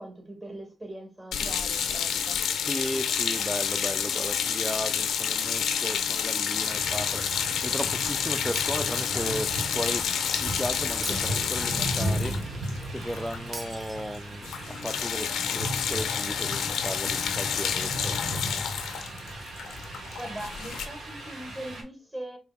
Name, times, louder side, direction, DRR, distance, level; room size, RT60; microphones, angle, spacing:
voice 1, 0.0-2.4 20.2-22.4, right 1 dB, 25° right, 1.9 m, -40 dB
sound 1, 1.3-13.7 14.0-14.2 14.4-20.9, left 7 dB, 85° left, 0.4 m, -29 dB
voice 2, 2.6-10.1 10.4-18.6, equal, ahead, 0.4 m, -36 dB
sound 2, 6.7-21.8, right 1 dB, 75° right, 1.1 m, -36 dB
Shatter, 8.5-9.5 11.0-12.0 13.5-14.5, right 2 dB, 45° right, 0.9 m, -41 dB
4.9 x 2.7 x 2.2 m
supercardioid pair, 45°, 0 cm